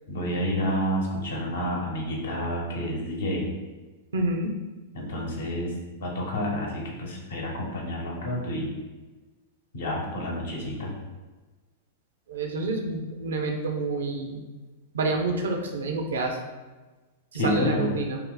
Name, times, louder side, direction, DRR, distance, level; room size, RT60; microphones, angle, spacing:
voice 1, 0.1-3.5 4.9-8.7 9.7-10.9 17.3-17.9, equal, 75° left, -2 dB, 0.9 m, -29 dB
voice 2, 4.1-4.5 12.3-14.4 14.9-16.4 17.3-18.2, right 2 dB, 75° right, 3 dB, 0.5 m, -28 dB
2.7 x 2.0 x 3.8 m, 1.2 s
hypercardioid pair, 105°, 0 cm